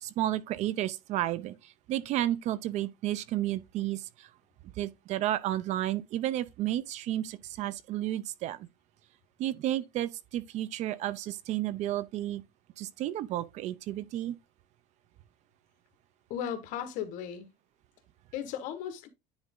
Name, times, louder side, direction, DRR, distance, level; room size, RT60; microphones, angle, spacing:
voice 1, 0.0-4.3 4.8-8.7 9.4-12.4 12.8-14.4, right 13 dB, 60° right, 0.6 m, -32 dB
voice 2, 16.3-17.5 18.3-19.1, left 9 dB, 75° left, 1.4 m, -36 dB
9.7 x 3.6 x 3.7 m
cardioid pair, 130°, 13 cm